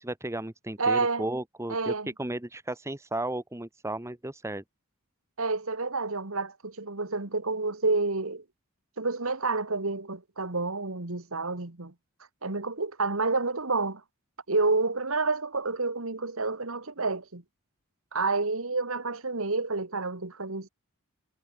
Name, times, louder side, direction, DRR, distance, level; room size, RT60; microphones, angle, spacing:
voice 1, 0.0-1.9 2.2-4.6, right 1 dB, 15° right, 1.2 m, -34 dB
voice 2, 0.8-1.3 1.7-2.1 5.4-8.4 9.0-11.9 12.4-14.0 14.5-17.4 18.1-20.7, right 3 dB, 65° right, 1.9 m, -29 dB
head